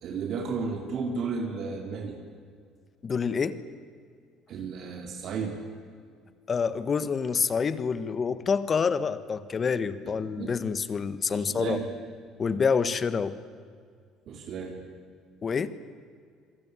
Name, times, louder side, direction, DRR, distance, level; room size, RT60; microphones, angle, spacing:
voice 1, 0.0-2.2 4.5-5.6 10.0-10.5 11.3-11.9 14.3-14.8, right 5 dB, 50° right, 3 dB, 3.7 m, -33 dB
voice 2, 3.0-3.6 6.5-11.8 12.4-13.4 15.4-15.7, left 5 dB, 30° left, 14 dB, 1.4 m, -27 dB
27.5 x 22.0 x 9.8 m, 2.1 s
cardioid pair, 140°, 0 cm